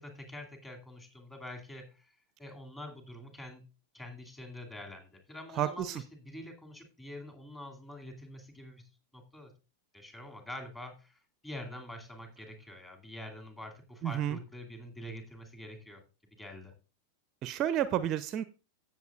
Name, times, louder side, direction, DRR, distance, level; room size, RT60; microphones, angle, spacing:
voice 1, 0.0-2.1 2.4-3.6 3.9-9.5 9.9-16.0 16.4-16.7, left 1 dB, 10° left, 3 dB, 2.5 m, -46 dB
voice 2, 5.5-6.0 14.0-14.4 17.4-18.4, right 11 dB, 35° right, 15 dB, 0.5 m, -31 dB
16.0 x 7.0 x 2.4 m, 0.32 s
figure-of-eight pair, 90°, 0 cm